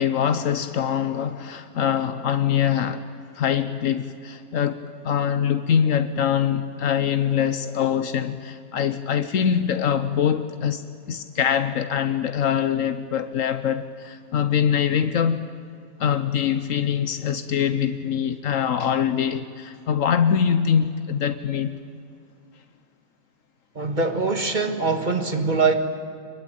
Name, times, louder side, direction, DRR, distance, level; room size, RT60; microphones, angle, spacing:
voice 1, 0.0-3.0 3.3-4.8 5.0-15.5 16.0-21.8, left 8 dB, 80° left, 1.3 m, -23 dB
voice 2, 23.8-25.7, right 4 dB, 35° right, 1.9 m, -23 dB
24.0 x 22.5 x 9.1 m
omnidirectional pair, 1.4 m